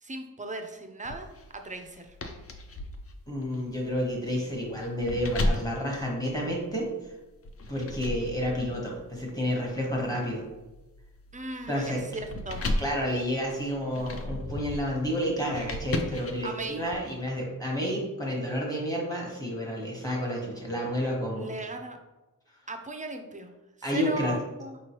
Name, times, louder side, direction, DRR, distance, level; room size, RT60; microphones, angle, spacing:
voice 1, 0.0-2.2 11.3-12.7 16.4-16.8 21.4-22.0 22.7-23.5 23.9-24.8, right 2 dB, 25° right, 5 dB, 0.4 m, -37 dB
sound 1, 1.0-6.9 7.4-17.0, left 1 dB, 45° left, 0.4 m, -36 dB
voice 2, 3.3-6.9 7.7-10.4 11.7-12.0 12.8-21.5 23.8-24.3, equal, 10° left, -2 dB, 1.0 m, -30 dB
4.6 x 3.0 x 2.9 m, 1.1 s
wide cardioid pair, 130°, 33 cm